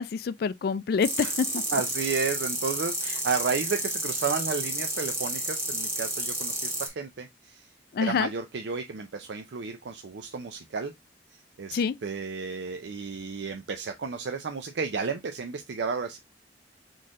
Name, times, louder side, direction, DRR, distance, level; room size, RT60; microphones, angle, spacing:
voice 1, 0.0-1.6 7.9-8.3 11.7-11.9, left 6 dB, 60° left, 0.3 m, -27 dB
sound 1, 1.0-6.9, right 1 dB, 15° right, 1.5 m, -31 dB
voice 2, 1.7-7.7 8.0-10.9 11.6-16.2, right 5 dB, 75° right, 0.5 m, -32 dB
4.2 x 3.2 x 3.6 m
head